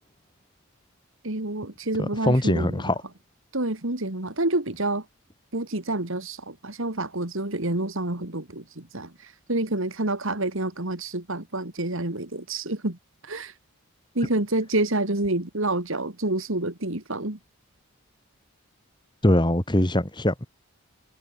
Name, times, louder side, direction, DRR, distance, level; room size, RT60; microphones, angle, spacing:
voice 1, 1.2-2.9 3.5-5.1 5.5-13.0 13.2-13.5 14.1-17.4, right 2 dB, 60° right, 2.7 m, -28 dB
voice 2, 2.0-3.0 19.2-20.5, left 1 dB, 20° left, 2.3 m, -22 dB
head